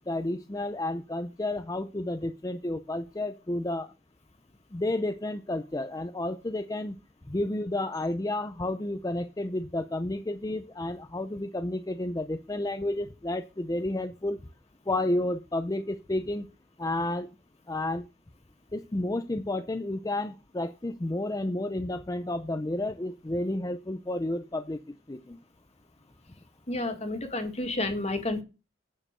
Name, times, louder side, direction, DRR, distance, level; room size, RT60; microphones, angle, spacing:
voice 1, 0.1-3.9 4.7-7.0 7.3-14.4 14.9-16.5 16.8-17.3 17.7-18.1 18.7-25.4, left 1 dB, 20° left, 9 dB, 0.5 m, -31 dB
voice 2, 26.7-28.4, left 2 dB, 35° left, 6 dB, 2.0 m, -30 dB
9.0 x 6.6 x 6.6 m, 0.29 s
head